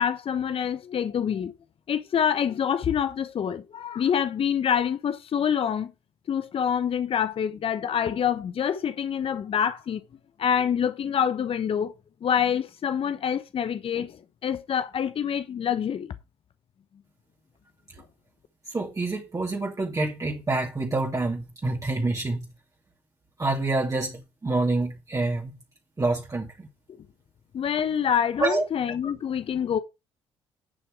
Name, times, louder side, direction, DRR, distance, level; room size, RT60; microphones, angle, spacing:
voice 1, 0.0-1.5 1.9-5.9 6.3-10.0 10.4-11.9 12.2-16.1 27.5-29.8, left 8 dB, 45° left, 1.0 m, -26 dB
voice 2, 18.7-22.5 23.4-25.5 26.0-26.7 28.4-28.7, right 2 dB, 25° right, 2.4 m, -27 dB
10.5 x 5.8 x 4.8 m
figure-of-eight pair, 45°, 13 cm